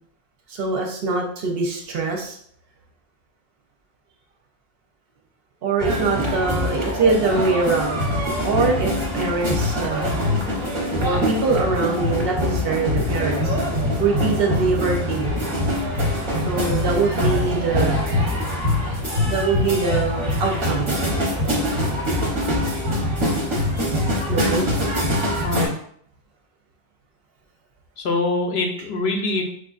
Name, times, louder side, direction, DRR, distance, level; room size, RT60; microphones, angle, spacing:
voice 1, 0.5-2.4 5.6-8.0 8.4-10.1 11.0-13.5 14.0-15.3 16.4-18.0 19.3-20.9 24.3-24.7, right 4 dB, 65° right, 1 dB, 0.7 m, -23 dB
sound 1, 5.8-25.7, left 1 dB, 30° right, 0.7 m, -23 dB
voice 2, 28.0-29.4, left 3 dB, 65° left, 3 dB, 0.8 m, -24 dB
4.6 x 2.5 x 2.3 m, 0.63 s
omnidirectional pair, 1.2 m